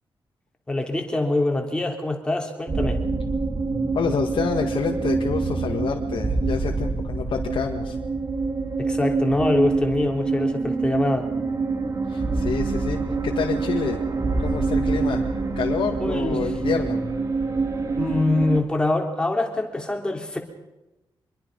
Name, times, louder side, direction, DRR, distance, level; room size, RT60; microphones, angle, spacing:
voice 1, 0.7-3.0 8.8-11.3 16.0-16.4 18.0-20.4, left 2 dB, 10° left, 2 dB, 3.3 m, -24 dB
sound 1, 2.7-18.6, right 3 dB, 35° right, 2.4 m, -25 dB
voice 2, 3.9-8.0 12.1-14.0 14.4-17.0, left 6 dB, 70° left, 1 dB, 1.9 m, -28 dB
25.5 x 22.0 x 5.4 m, 0.98 s
wide cardioid pair, 160°, 9 cm